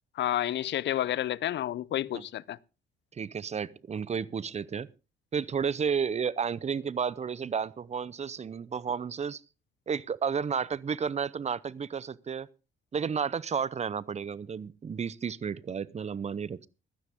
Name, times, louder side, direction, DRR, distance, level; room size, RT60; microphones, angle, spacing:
voice 1, 0.2-2.6, left 12 dB, 65° left, 0.5 m, -30 dB
voice 2, 3.1-4.9 5.3-9.4 9.9-12.5 12.9-16.7, right 6 dB, 35° right, 0.7 m, -32 dB
15.5 x 12.5 x 3.6 m
cardioid pair, 90°, 20 cm